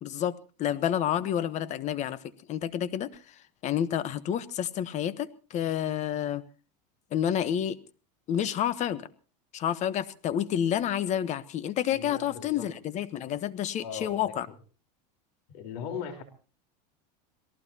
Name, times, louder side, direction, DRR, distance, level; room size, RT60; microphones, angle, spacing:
voice 1, 0.0-2.2 2.5-3.1 3.6-6.4 7.1-7.8 8.3-9.1 9.5-14.5, left 10 dB, 35° left, 17 dB, 1.1 m, -29 dB
voice 2, 11.9-12.7 13.8-14.3 15.5-16.2, left 7 dB, 70° left, 8 dB, 4.1 m, -38 dB
27.0 x 18.0 x 2.9 m, 0.37 s
supercardioid pair, 140°, 21 cm